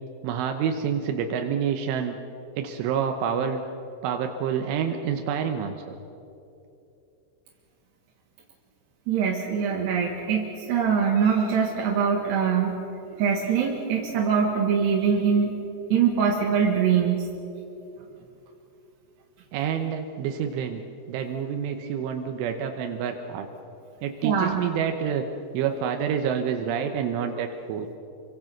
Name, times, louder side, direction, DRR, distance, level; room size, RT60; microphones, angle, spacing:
voice 1, 0.2-2.2 2.6-3.6 4.0-5.8 19.5-23.5 24.0-25.3 25.5-27.9, right 7 dB, 85° right, 5 dB, 3.5 m, -28 dB
voice 2, 9.1-12.8 13.2-15.5 15.9-17.3 24.2-24.6, right 6 dB, 65° right, -2 dB, 3.7 m, -23 dB
27.5 x 24.0 x 6.0 m, 2.8 s
omnidirectional pair, 5.5 m